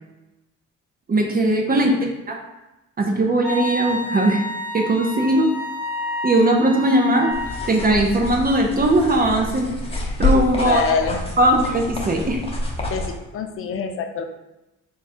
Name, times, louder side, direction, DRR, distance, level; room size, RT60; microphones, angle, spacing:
voice 1, 1.1-2.0 2.3-2.4 3.0-4.4 4.7-5.5 6.2-7.3 7.7-9.7 10.2-10.8 11.4-12.4, right 1 dB, 30° right, 2 dB, 0.5 m, -19 dB
voice 2, 1.7-2.1 10.6-11.2 12.8-14.2, left 6 dB, 45° left, 6 dB, 0.5 m, -26 dB
Wind instrument woodwind instrument, 3.4-7.7, left 2 dB, 55° right, 1.2 m, -29 dB
sound 1, 7.3-13.1, left 2 dB, 20° left, 0.8 m, -27 dB
3.6 x 2.3 x 4.2 m, 0.99 s
cardioid pair, 90°, 30 cm